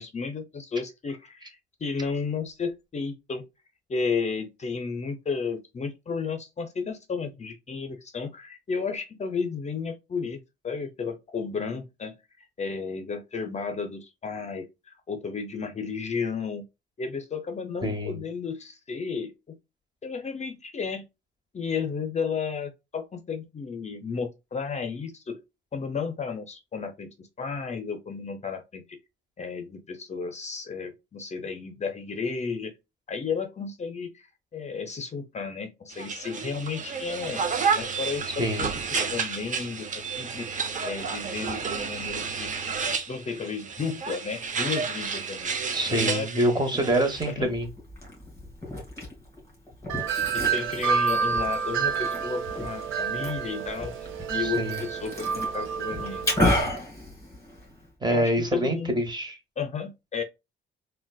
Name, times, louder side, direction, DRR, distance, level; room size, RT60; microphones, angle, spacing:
voice 1, 0.0-3.5 3.9-16.7 17.0-19.6 20.0-21.1 21.5-25.4 25.7-29.0 29.4-32.7 33.1-34.3 34.5-37.4 37.7-38.7 39.1-42.5 43.1-45.5 45.9-46.3 46.7-46.9 47.3-47.5 50.3-53.9 54.3-56.4 58.1-58.9 59.6-60.2, left 5 dB, 35° left, 0.6 m, -33 dB
voice 2, 17.8-18.2 38.4-38.6 45.7-47.7 54.4-54.8 58.0-59.4, right 1 dB, 20° right, 1.0 m, -26 dB
sound 1, 35.9-47.3, right 5 dB, 40° right, 0.7 m, -31 dB
Liquid, 46.9-57.9, left 1 dB, 15° left, 2.0 m, -33 dB
Wind chime, 49.9-56.6, right 6 dB, 85° right, 0.7 m, -29 dB
3.9 x 2.2 x 2.2 m
cardioid pair, 90°, 20 cm